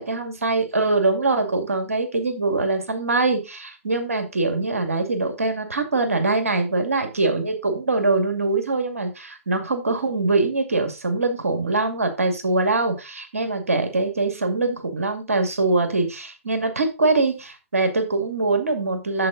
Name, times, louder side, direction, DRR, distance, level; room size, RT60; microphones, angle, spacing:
voice 1, 0.0-19.3, right 3 dB, 85° right, 6 dB, 2.2 m, -23 dB
7.8 x 7.6 x 3.9 m, 0.27 s
figure-of-eight pair, 120°, 8 cm